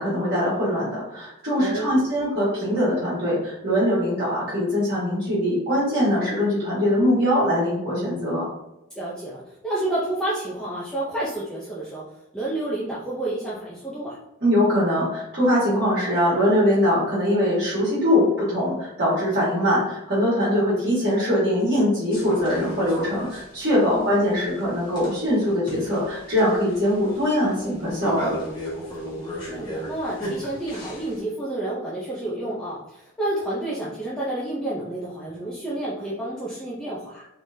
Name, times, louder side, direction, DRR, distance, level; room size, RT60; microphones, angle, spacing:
voice 1, 0.0-8.4 14.4-28.4, equal, 45° right, -9 dB, 1.5 m, -22 dB
voice 2, 1.6-2.1 8.9-12.0 12.3-14.2 20.4-20.6 23.9-24.1 29.0-37.3, right 1 dB, 5° left, -8 dB, 0.5 m, -30 dB
sound 1, 22.1-31.2, right 1 dB, 20° left, 1.1 m, -35 dB
3.7 x 3.1 x 2.7 m, 0.90 s
head